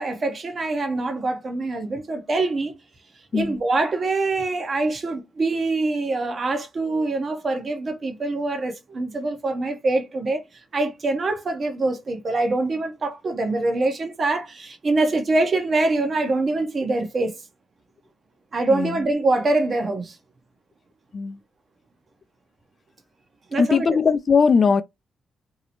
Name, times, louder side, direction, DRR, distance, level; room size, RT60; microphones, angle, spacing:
voice 1, 0.0-2.8 3.3-10.4 10.7-17.4 18.5-20.2 23.5-23.9, right 2 dB, 50° right, 0.7 m, -24 dB
voice 2, 18.7-19.1 21.1-21.4 23.6-24.8, left 5 dB, 50° left, 0.3 m, -19 dB
2.7 x 2.0 x 2.8 m
supercardioid pair, 55°, 0 cm